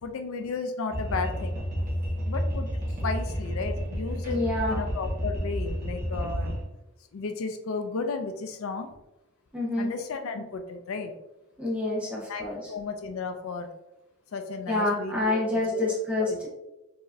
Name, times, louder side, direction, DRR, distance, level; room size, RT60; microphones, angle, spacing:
voice 1, 0.0-1.6 2.3-6.6 7.1-8.9 9.8-11.1 12.3-13.7 14.3-15.8 16.2-16.4, left 4 dB, 70° left, 7 dB, 0.4 m, -34 dB
sound 1, 0.9-6.6, equal, 40° right, 1.3 m, -30 dB
voice 2, 4.3-4.8 9.5-9.9 11.6-12.6 14.7-16.5, left 2 dB, 5° right, -5 dB, 1.2 m, -27 dB
4.7 x 3.1 x 2.6 m, 0.96 s
head